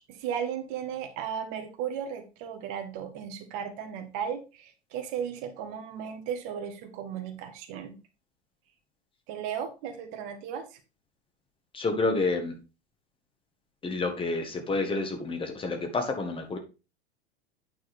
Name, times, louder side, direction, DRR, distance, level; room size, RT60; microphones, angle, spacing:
voice 1, 0.1-8.0 9.3-10.8, right 8 dB, 45° right, 6 dB, 1.6 m, -35 dB
voice 2, 11.7-12.6 13.8-16.6, left 3 dB, 15° left, 4 dB, 1.6 m, -29 dB
9.0 x 4.7 x 4.3 m, 0.31 s
figure-of-eight pair, 90°, 32 cm